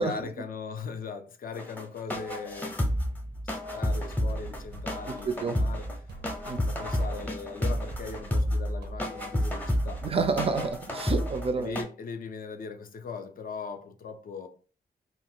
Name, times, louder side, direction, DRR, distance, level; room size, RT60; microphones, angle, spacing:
voice 1, 0.0-5.9 6.5-10.0 11.5-14.5, left 5 dB, 60° left, 0.4 m, -39 dB
sound 1, 1.6-11.8, equal, 10° left, 0.6 m, -30 dB
sound 2, 4.3-11.5, right 1 dB, 85° right, 0.6 m, -45 dB
voice 2, 5.2-5.6 6.4-6.6 10.0-11.8, right 4 dB, 35° right, 0.4 m, -29 dB
2.4 x 2.2 x 3.5 m
wide cardioid pair, 130°, 17 cm